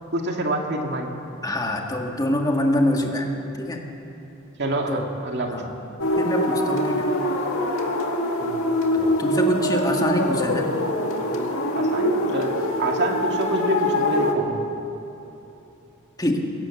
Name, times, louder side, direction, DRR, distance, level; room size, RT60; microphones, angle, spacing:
voice 1, 0.1-1.1 4.6-5.7 8.4-8.6 11.7-12.5 12.8-14.6, right 1 dB, 55° right, 2 dB, 2.1 m, -26 dB
voice 2, 1.4-3.3 3.6-3.8 4.9-5.1 5.5-5.8 6.2-7.1 8.9-10.7 16.2-16.5, left 1 dB, 20° left, 1 dB, 1.9 m, -25 dB
sound 1, 6.0-14.3, left 1 dB, 70° left, 2.3 m, -24 dB
23.0 x 17.5 x 7.2 m, 2.9 s
head